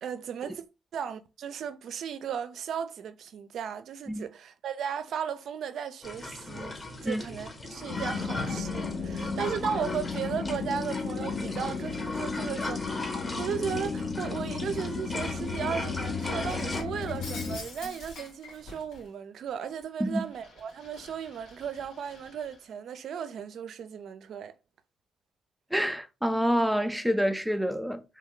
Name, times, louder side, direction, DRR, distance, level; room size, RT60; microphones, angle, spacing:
voice 1, 0.0-0.6 0.9-24.6, right 7 dB, 65° right, 0.4 m, -36 dB
sound 1, 6.0-16.8, left 2 dB, 25° left, 0.8 m, -38 dB
sound 2, 7.9-17.6, left 4 dB, 55° left, 0.8 m, -34 dB
Shatter, 16.2-19.1 19.5-22.6, left 3 dB, 85° left, 1.9 m, -47 dB
voice 2, 25.7-28.0, equal, ahead, 0.5 m, -27 dB
3.1 x 2.2 x 3.7 m
cardioid pair, 90°, 0 cm